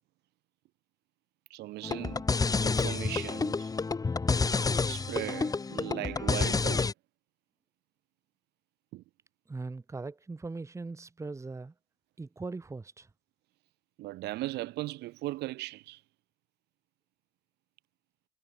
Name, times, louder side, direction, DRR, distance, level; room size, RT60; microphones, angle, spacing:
voice 1, 1.5-2.3 2.6-3.7 4.9-6.9 8.9-9.0 14.0-16.0, right 18 dB, 85° right, 2.4 m, -38 dB
sound 1, 1.8-6.9, left 4 dB, 20° left, 1.3 m, -29 dB
voice 2, 9.5-11.7 12.2-13.1, right 3 dB, 15° right, 1.7 m, -40 dB
cardioid pair, 110°, 17 cm